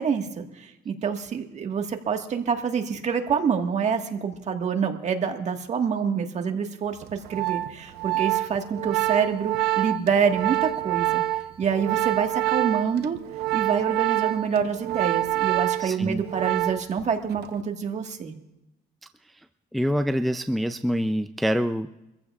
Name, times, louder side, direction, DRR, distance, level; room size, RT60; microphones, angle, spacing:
voice 1, 0.0-11.2 11.6-13.2 13.5-18.3, right 6 dB, 45° right, 4 dB, 1.6 m, -27 dB
Organ, 7.0-17.0 17.3-17.6, right 16 dB, 75° right, 0.7 m, -26 dB
voice 2, 15.8-16.2 19.7-21.9, equal, ahead, 9 dB, 0.4 m, -25 dB
24.0 x 15.0 x 2.4 m, 0.93 s
cardioid pair, 110°, 17 cm